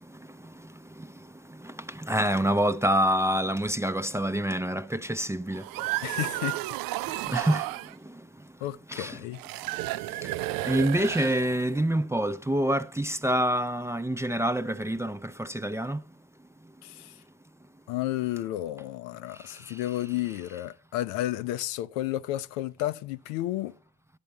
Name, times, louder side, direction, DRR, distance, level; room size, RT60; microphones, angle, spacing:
voice 1, 1.5-5.6 7.3-7.7 8.9-9.2 10.2-10.3 10.6-16.0, right 1 dB, 5° right, 0.5 m, -27 dB
sound 1, 5.5-7.9 9.3-11.8, right 17 dB, 55° right, 0.5 m, -32 dB
voice 2, 6.0-6.6 7.1-7.3 8.6-9.4 16.8-17.1 17.9-23.7, left 15 dB, 70° left, 0.7 m, -32 dB
11.0 x 9.4 x 4.6 m
figure-of-eight pair, 45°, 42 cm